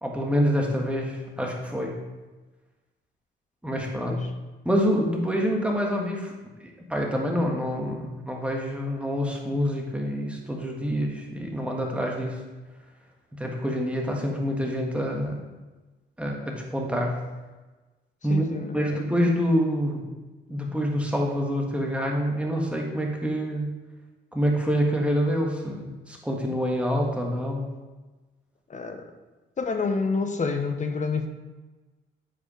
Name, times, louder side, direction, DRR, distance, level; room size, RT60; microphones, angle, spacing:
voice 1, 0.0-2.0 3.6-4.2 4.7-6.3 6.6-12.4 13.4-15.4 16.2-17.2 18.2-18.4 18.7-20.1 20.5-23.7 24.3-27.7, equal, 5° right, 0 dB, 1.6 m, -26 dB
voice 2, 18.3-19.2 28.7-29.1 29.6-31.3, left 4 dB, 40° left, 6 dB, 0.9 m, -28 dB
8.1 x 5.0 x 4.9 m, 1.2 s
cardioid pair, 90°, 20 cm